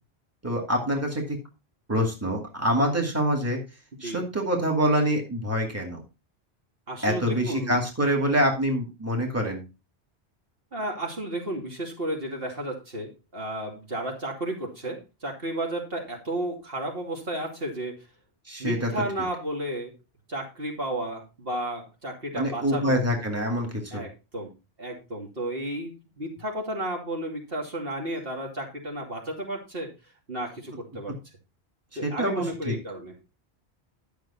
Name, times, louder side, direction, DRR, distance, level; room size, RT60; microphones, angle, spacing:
voice 1, 0.4-1.4 1.9-3.6 4.0-6.0 7.0-9.6 18.5-18.9 22.3-24.0 32.0-32.7, equal, 15° right, 1 dB, 2.6 m, -25 dB
voice 2, 6.9-7.8 10.7-18.1 18.6-19.9 20.3-23.0 23.9-24.5 24.8-29.9 30.3-31.1 32.0-33.1, right 1 dB, 60° right, 0 dB, 3.0 m, -33 dB
11.5 x 6.7 x 4.3 m, 0.28 s
omnidirectional pair, 1.1 m